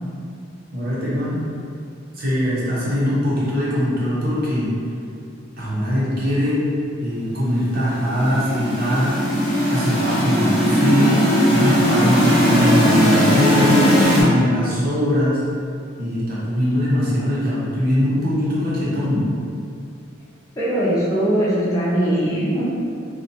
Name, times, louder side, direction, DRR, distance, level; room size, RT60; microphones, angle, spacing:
voice 1, 0.7-1.4 2.1-4.7 5.6-6.6 7.0-9.1 9.7-11.2 11.5-13.7 14.2-15.4 16.0-19.3 22.2-22.3, equal, 50° right, -8 dB, 0.7 m, -21 dB
sound 1, 7.8-14.2, equal, 25° right, 0.9 m, -18 dB
voice 2, 20.6-22.6, right 1 dB, 15° left, -9 dB, 0.5 m, -20 dB
2.7 x 2.1 x 2.8 m, 2.5 s
head